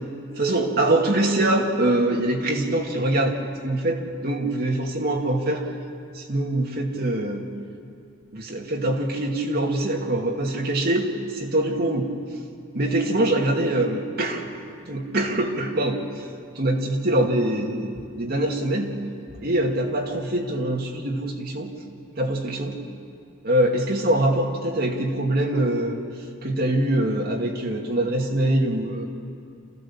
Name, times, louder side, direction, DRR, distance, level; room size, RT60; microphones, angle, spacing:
voice 1, 0.3-3.4 3.6-5.7 6.1-7.5 8.3-12.1 12.7-14.5 14.9-16.3 16.5-19.0 19.3-21.7 22.2-22.8 23.4-26.0 26.4-29.1, right 1 dB, 50° right, 0 dB, 2.2 m, -24 dB
28.5 x 15.5 x 7.3 m, 2.4 s
head